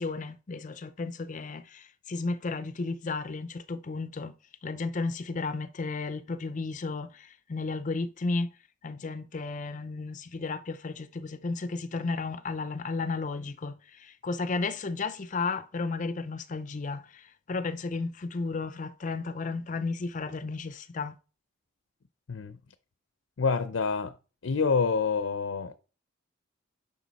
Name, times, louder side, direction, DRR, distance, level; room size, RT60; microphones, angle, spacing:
voice 1, 0.0-4.3 4.6-8.5 8.8-21.2, left 3 dB, 40° left, 0.5 m, -33 dB
voice 2, 22.3-22.6 23.4-24.1 24.4-25.8, left 5 dB, 80° left, 0.6 m, -27 dB
9.1 x 5.9 x 4.1 m
head